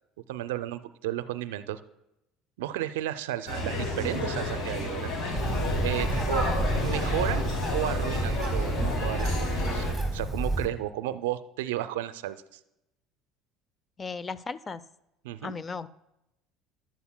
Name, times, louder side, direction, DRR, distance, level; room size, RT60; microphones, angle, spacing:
voice 1, 0.3-1.8 2.6-5.1 5.8-6.5 6.8-7.5 7.7-9.9 10.1-12.6 15.2-15.5, right 13 dB, 80° right, 12 dB, 0.4 m, -33 dB
sound 1, 3.5-9.9, left 1 dB, 60° left, 3.0 m, -31 dB
Bird, 5.4-10.7, right 1 dB, 15° left, 3.3 m, -30 dB
voice 2, 14.0-14.8 15.4-15.9, left 4 dB, 30° left, 17 dB, 0.5 m, -36 dB
14.0 x 10.0 x 2.2 m, 0.87 s
hypercardioid pair, 75°, 0 cm